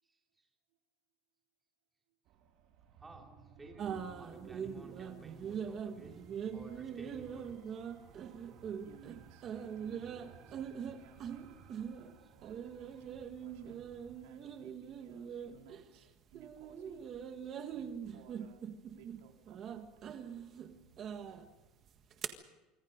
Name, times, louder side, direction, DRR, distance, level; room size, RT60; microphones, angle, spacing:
voice 1, 0.0-0.5 3.0-6.2 6.5-7.8 12.2-12.3 12.9-13.0 20.5-20.6 21.3-21.4, right 2 dB, 10° right, 1 dB, 3.0 m, -55 dB
sound 1, 2.3-14.2, right 6 dB, 45° right, 2.8 m, -58 dB
sound 2, 3.8-16.0 16.3-22.3, right 7 dB, 30° right, 1.6 m, -43 dB
voice 2, 8.8-11.7 12.4-17.1 17.7-19.9, right 9 dB, 80° right, 3 dB, 3.7 m, -60 dB
26.5 x 25.0 x 5.2 m, 1.1 s
cardioid pair, 180°, 0 cm